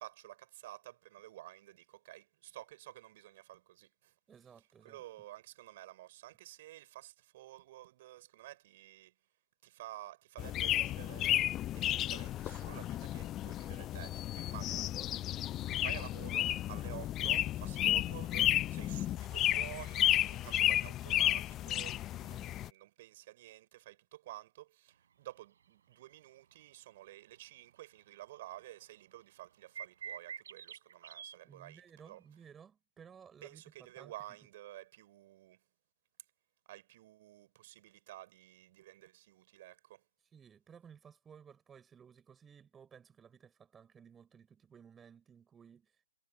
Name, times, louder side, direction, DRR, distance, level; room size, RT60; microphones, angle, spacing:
voice 1, 0.0-4.1 4.6-9.1 9.6-11.5 11.7-15.3 15.8-32.2 33.4-35.6 36.7-40.0, right 15 dB, 40° right, 5.0 m, -51 dB
voice 2, 4.3-5.0 22.2-22.5 31.4-33.6 34.0-34.1 40.3-46.1, right 7 dB, 15° right, 6.0 m, -57 dB
sound 1, 10.4-22.7, left 13 dB, 20° left, 0.6 m, -33 dB
sound 2, 25.9-26.1 26.6-26.7 27.7-27.9 28.2-28.3 28.5-28.9 29.7-31.3 32.1-32.2, right 8 dB, 60° right, 4.7 m, -46 dB
figure-of-eight pair, 130°, 0 cm